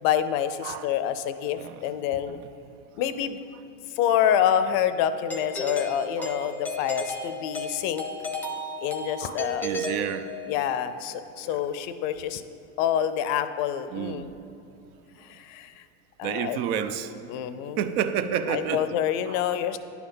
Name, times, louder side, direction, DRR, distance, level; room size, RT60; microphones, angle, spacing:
voice 1, 0.0-2.4 3.0-3.4 3.9-8.0 8.8-9.7 10.5-12.4 12.8-14.3 15.2-15.8 16.2-16.6 17.3-17.8 18.5-19.8, left 10 dB, 55° left, 12 dB, 0.5 m, -27 dB
Doorbell, 5.3-10.7, left 1 dB, 5° left, 0.6 m, -34 dB
voice 2, 6.2-6.5 9.2-10.3 11.4-11.6 13.9-14.3 16.2-17.3 17.8-19.0 19.3-19.8, right 8 dB, 65° right, 10 dB, 0.6 m, -31 dB
10.5 x 3.5 x 5.4 m, 2.6 s
hypercardioid pair, 105°, 49 cm